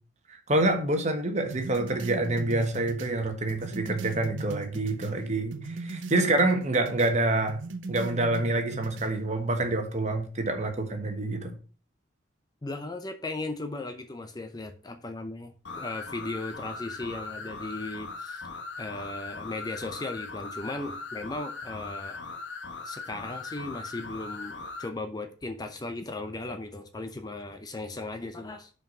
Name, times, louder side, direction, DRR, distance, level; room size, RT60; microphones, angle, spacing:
voice 1, 0.3-7.6 7.9-11.5, right 2 dB, 40° right, 5 dB, 1.3 m, -27 dB
sound 1, 1.5-5.2 5.5-7.1 7.5-9.1, right 3 dB, 85° right, 0.7 m, -39 dB
voice 2, 12.6-18.5 18.8-22.2 22.8-28.7, left 2 dB, 20° left, 7 dB, 0.6 m, -37 dB
sound 2, 15.6-24.9, left 4 dB, 75° left, 1.2 m, -39 dB
5.7 x 4.7 x 6.0 m, 0.38 s
head